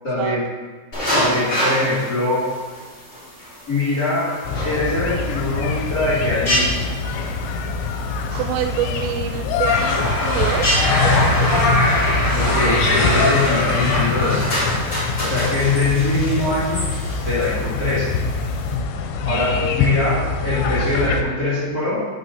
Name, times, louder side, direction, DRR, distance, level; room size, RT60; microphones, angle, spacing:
voice 1, 0.0-0.4 1.1-2.5 3.7-6.8 12.3-14.5 15.2-16.9 17.2-18.2 19.2-22.0, left 2 dB, 30° left, -11 dB, 1.9 m, -22 dB
sound 1, 0.9-18.7, equal, 50° left, 0.7 m, -29 dB
sound 2, 4.4-21.2, left 4 dB, 85° left, 2.8 m, -24 dB
voice 2, 8.3-11.8 19.3-19.7, right 11 dB, 85° right, 9 dB, 2.7 m, -27 dB
sound 3, 9.7-14.8, left 1 dB, 65° left, 3.7 m, -21 dB
10.5 x 5.5 x 4.1 m, 1.5 s
omnidirectional pair, 4.8 m